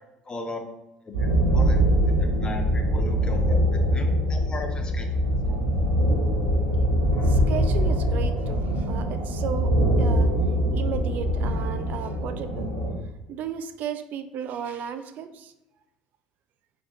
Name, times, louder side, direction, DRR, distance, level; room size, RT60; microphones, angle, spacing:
voice 1, 0.3-0.6 1.0-5.1 5.5-5.6, left 2 dB, 25° left, 4 dB, 0.7 m, -37 dB
sound 1, 1.1-12.9, equal, 85° right, 0.7 m, -23 dB
voice 2, 7.2-10.3 10.7-12.7 13.3-15.5, right 8 dB, 50° right, 10 dB, 0.3 m, -34 dB
3.7 x 3.4 x 2.5 m, 0.91 s
figure-of-eight pair, 60°, 4 cm